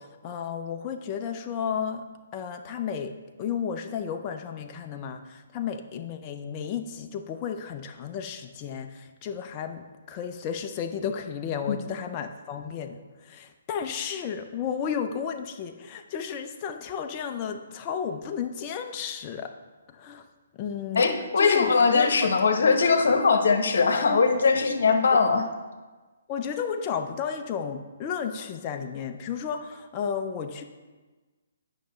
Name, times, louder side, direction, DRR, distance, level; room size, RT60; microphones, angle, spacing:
voice 1, 0.0-2.0 2.3-3.1 3.4-19.5 19.9-20.2 20.5-21.1 21.4-22.3 25.1-25.2 26.3-30.6, left 7 dB, 30° left, 5 dB, 0.5 m, -33 dB
voice 2, 20.9-25.4, left 4 dB, 65° left, 6 dB, 1.0 m, -21 dB
9.2 x 5.6 x 3.2 m, 1.3 s
figure-of-eight pair, 135°, 0 cm